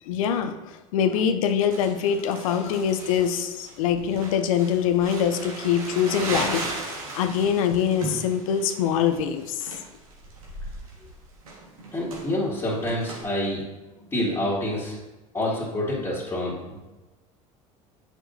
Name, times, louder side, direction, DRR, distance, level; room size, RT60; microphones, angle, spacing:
voice 1, 0.1-6.7 7.1-9.7, left 8 dB, 75° left, 8 dB, 0.6 m, -24 dB
Crumpling crinkling, 1.7-13.2, right 2 dB, 85° right, 1.5 m, -36 dB
voice 2, 11.9-13.6 14.1-15.0 15.3-16.8, left 1 dB, 20° left, -9 dB, 2.1 m, -27 dB
7.8 x 6.1 x 2.7 m, 1.1 s
hypercardioid pair, 80°, 17 cm